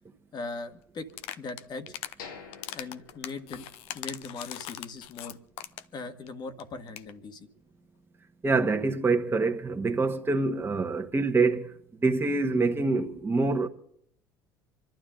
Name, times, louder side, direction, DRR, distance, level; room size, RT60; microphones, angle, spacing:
voice 1, 0.3-1.1 1.4-1.9 2.7-3.6 3.9-5.4 5.9-7.5, left 3 dB, 40° left, 1.7 m, -39 dB
sound 1, 1.1-2.2 2.5-6.0 6.3-6.4 6.6-6.7 6.9-7.1, left 12 dB, 60° left, 0.7 m, -40 dB
sound 2, 2.2-4.1 4.4-4.5 5.1-5.2, left 6 dB, 75° left, 1.9 m, -48 dB
voice 2, 8.4-11.7 12.0-13.7, right 3 dB, 20° right, 1.5 m, -25 dB
26.5 x 12.0 x 3.9 m
hypercardioid pair, 65°, 11 cm